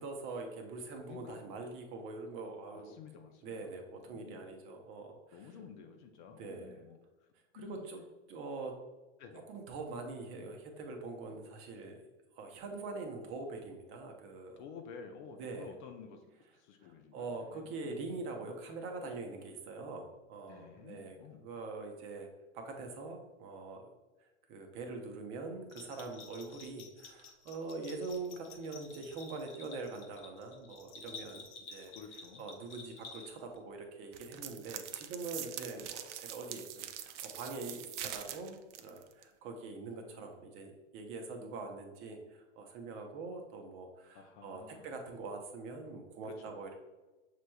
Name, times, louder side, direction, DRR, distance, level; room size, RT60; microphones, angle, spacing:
voice 1, 0.0-2.9 3.4-5.6 6.4-6.8 7.5-8.0 8.3-8.7 9.5-12.0 12.3-14.6 15.4-15.7 16.8-22.3 22.5-23.9 24.5-31.4 31.7-31.9 32.4-38.6 38.8-46.8, right 3 dB, 35° right, 3 dB, 0.7 m, -44 dB
voice 2, 1.1-1.7 2.7-3.5 4.0-4.4 5.3-7.0 7.5-7.9 9.2-9.5 14.6-16.2 16.6-18.0 20.5-21.4 31.9-32.4 44.1-44.9 46.3-46.4, left 6 dB, 40° left, 6 dB, 0.5 m, -51 dB
Bell, 25.7-33.6, left 4 dB, 70° left, 1.0 m, -51 dB
sound 1, 34.1-39.2, right 11 dB, 65° right, 0.5 m, -44 dB
6.6 x 3.0 x 2.2 m, 1.2 s
hypercardioid pair, 125°, 37 cm